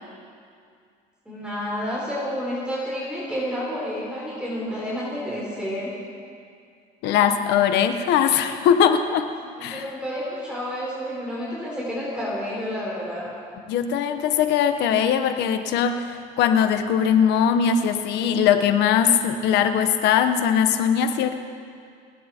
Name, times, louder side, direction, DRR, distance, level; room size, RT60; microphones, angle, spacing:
voice 1, 1.2-5.9 9.6-13.3, equal, 5° right, -7 dB, 4.9 m, -30 dB
voice 2, 7.0-9.3 9.6-9.9 13.7-21.3, left 8 dB, 85° left, 8 dB, 1.1 m, -20 dB
29.5 x 10.0 x 4.5 m, 2.3 s
cardioid pair, 110°, 17 cm